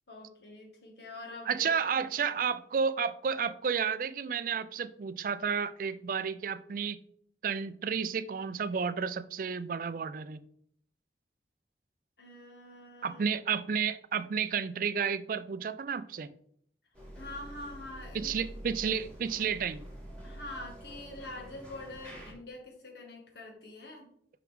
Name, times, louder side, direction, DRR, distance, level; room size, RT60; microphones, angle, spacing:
voice 1, 0.1-1.7 2.0-2.2 12.2-13.3 17.2-18.5 20.2-24.1, left 2 dB, 65° left, 0 dB, 1.9 m, -45 dB
voice 2, 1.5-7.0 7.4-10.4 13.0-16.3 18.1-19.8, right 6 dB, 50° right, 14 dB, 0.3 m, -31 dB
sound 1, 16.9-22.3, right 1 dB, 5° left, 1.9 m, -47 dB
5.9 x 5.9 x 3.6 m, 0.65 s
head